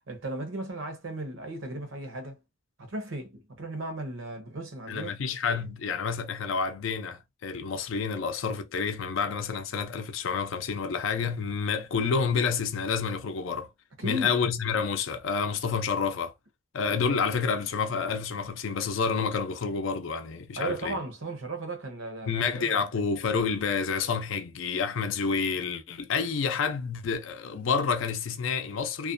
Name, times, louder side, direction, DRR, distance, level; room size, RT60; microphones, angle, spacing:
voice 1, 0.1-2.4 2.8-5.1 14.0-14.4 20.6-22.9, right 1 dB, 75° right, 0.8 m, -36 dB
voice 2, 4.9-13.7 14.0-16.3 16.7-20.9 22.3-29.1, left 5 dB, 75° left, 0.4 m, -29 dB
2.4 x 2.2 x 2.5 m
head